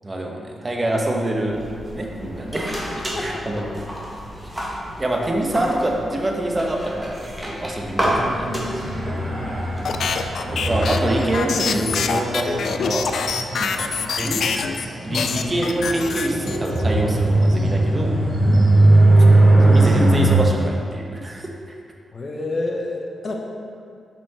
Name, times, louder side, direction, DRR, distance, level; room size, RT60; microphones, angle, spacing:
voice 1, 0.0-1.6 1.9-2.8 3.1-3.6 5.0-8.8 10.5-13.2 13.6-14.4 15.0-18.1 19.6-21.5, right 1 dB, 30° right, 0 dB, 1.0 m, -25 dB
sound 1, 1.5-11.2, equal, 10° right, 1.7 m, -31 dB
sound 2, 8.0-20.3, right 2 dB, 50° right, 1.5 m, -20 dB
sound 3, 9.8-14.9 15.1-16.8, left 5 dB, 75° left, 0.4 m, -25 dB
voice 2, 22.1-23.4, left 2 dB, 50° left, 1 dB, 1.0 m, -29 dB
6.0 x 5.1 x 4.3 m, 2.3 s
cardioid pair, 60°, 0 cm